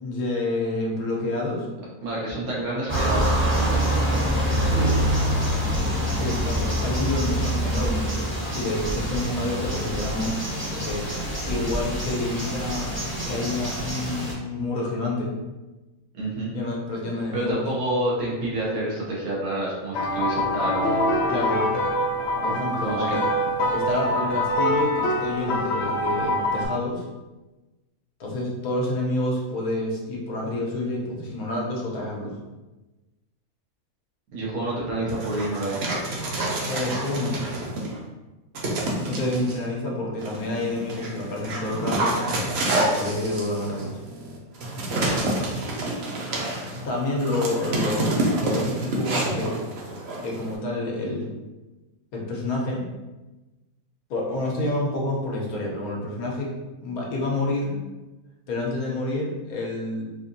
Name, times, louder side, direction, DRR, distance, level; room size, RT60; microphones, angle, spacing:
voice 1, 0.0-1.7 4.5-5.0 6.1-10.4 10.7-11.0 11.4-12.9 13.3-15.3 16.5-17.6 21.3-21.6 22.4-23.2 23.7-27.0 28.2-32.4 36.6-37.3 39.1-42.1 42.7-44.0 46.8-49.5 50.2-51.3 52.1-52.8 54.1-56.5 56.8-57.8 58.5-60.0, left 2 dB, 85° left, -2 dB, 1.3 m, -28 dB
voice 2, 2.0-4.2 16.1-16.5 17.3-21.2 22.4-22.6 22.8-23.2 34.3-35.8 44.9-45.4, right 1 dB, 85° right, -5 dB, 1.5 m, -29 dB
sound 1, 2.9-14.3, right 1 dB, 10° right, 0.6 m, -25 dB
sound 2, 19.9-26.7, left 1 dB, 60° left, 0.7 m, -24 dB
Dog, 35.1-38.0 38.5-39.6 40.2-50.6, right 1 dB, 55° right, 0.8 m, -28 dB
4.2 x 2.5 x 2.6 m, 1.1 s
omnidirectional pair, 1.5 m